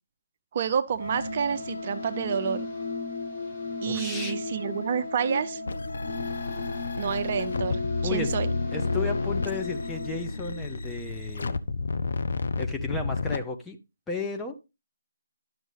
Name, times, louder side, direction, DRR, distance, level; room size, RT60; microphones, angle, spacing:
voice 1, 0.5-2.6 3.8-5.6 7.0-8.5, right 7 dB, 40° right, 0.6 m, -29 dB
Wind instrument woodwind instrument, 0.9-10.3, equal, 90° left, 1.6 m, -40 dB
sound 1, 0.9-11.3, left 5 dB, 40° left, 4.0 m, -36 dB
voice 2, 3.9-4.4 8.0-8.3 8.7-11.6 12.6-13.8 14.1-14.6, left 3 dB, 5° left, 0.7 m, -33 dB
sound 2, 5.7-13.4, left 3 dB, 65° left, 0.6 m, -31 dB
11.0 x 6.3 x 3.2 m
figure-of-eight pair, 150°, 0 cm